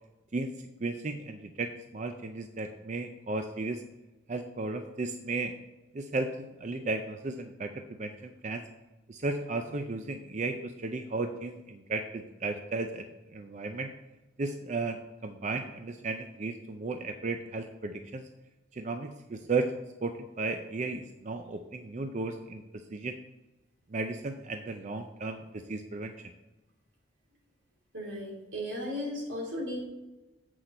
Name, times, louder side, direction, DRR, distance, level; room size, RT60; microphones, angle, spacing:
voice 1, 0.8-3.8 4.3-5.5 5.9-7.7 8.0-8.1 8.4-8.6 9.1-13.1 13.3-13.9 14.4-18.3 18.7-19.7 20.0-22.6 22.9-23.2 23.9-26.1, right 3 dB, 40° right, 6 dB, 0.5 m, -34 dB
voice 2, 27.9-29.9, left 1 dB, 90° right, -3 dB, 3.1 m, -35 dB
8.0 x 6.3 x 4.3 m, 1.1 s
head